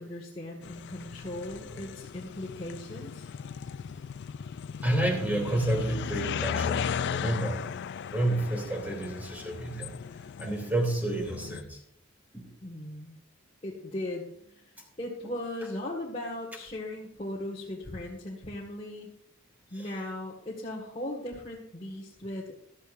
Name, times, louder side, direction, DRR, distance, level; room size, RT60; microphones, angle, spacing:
voice 1, 0.0-3.2 12.6-13.2 13.6-19.1 19.7-22.6, left 1 dB, 30° left, -4 dB, 1.7 m, -38 dB
sound 1, 0.6-11.6, left 7 dB, 55° left, 0.4 m, -36 dB
voice 2, 4.8-7.6 8.1-9.9 10.4-11.8 12.3-12.5 19.8-19.9, right 1 dB, 10° right, 0 dB, 2.9 m, -30 dB
15.0 x 12.5 x 2.6 m, 0.67 s
head